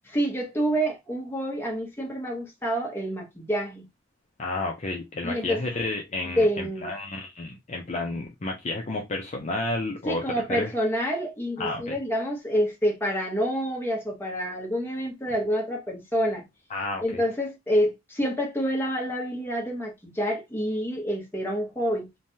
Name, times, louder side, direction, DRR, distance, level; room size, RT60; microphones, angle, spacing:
voice 1, 0.1-3.8 5.2-5.6 6.4-6.9 10.0-16.4 17.0-22.1, equal, 10° left, 0.9 m, -27 dB
voice 2, 4.4-10.2 10.5-10.7 11.6-12.0 16.7-17.2, left 2 dB, 35° left, 0.5 m, -31 dB
3.2 x 2.2 x 2.7 m
head